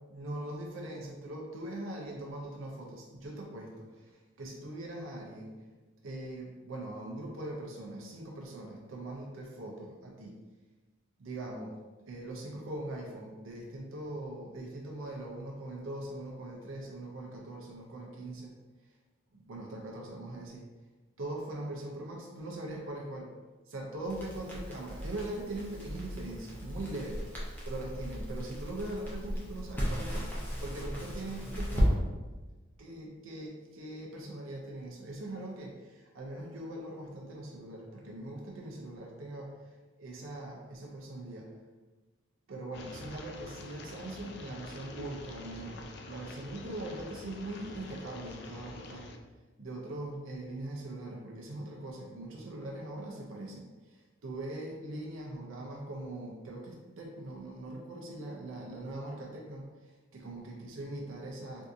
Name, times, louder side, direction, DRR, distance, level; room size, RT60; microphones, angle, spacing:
voice 1, 0.1-5.5 6.0-10.4 11.2-11.8 12.1-18.5 19.3-20.7 21.2-23.3 23.7-27.3 27.6-32.1 32.8-41.6 42.5-49.1 49.6-61.7, right 1 dB, 80° right, -1 dB, 0.5 m, -41 dB
Crackle, 24.0-31.9, equal, 10° left, 0.6 m, -35 dB
sound 1, 42.7-49.2, left 3 dB, 55° left, 0.3 m, -47 dB
3.5 x 2.7 x 2.5 m, 1.2 s
head